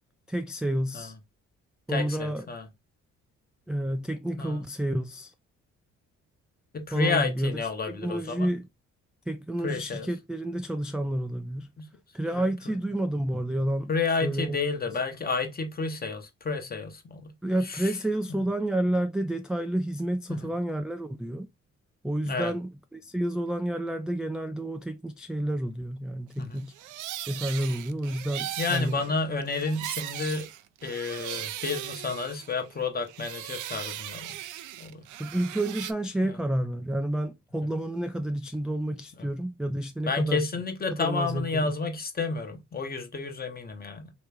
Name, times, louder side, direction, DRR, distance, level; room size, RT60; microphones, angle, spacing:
voice 1, 0.3-1.1 1.9-2.5 3.7-5.3 6.9-7.6 7.9-8.7 9.3-11.7 12.1-13.9 14.2-14.6 14.8-15.0 17.4-21.5 22.0-26.7 27.3-29.1 35.2-40.5 41.0-41.8, right 1 dB, 5° right, 0.3 m, -30 dB
voice 2, 1.9-2.6 4.4-4.6 6.7-8.5 9.6-10.1 11.8-11.9 12.3-12.5 13.9-17.3 17.7-17.9 20.3-20.5 22.3-22.5 26.4-26.6 28.6-30.5 30.8-34.3 34.8-35.1 39.2-39.3 40.0-44.1, left 4 dB, 30° left, 1.0 m, -30 dB
sound 1, 26.6-32.8 33.1-35.9, right 13 dB, 80° right, 0.5 m, -38 dB
3.2 x 3.0 x 3.3 m
cardioid pair, 90°, 30 cm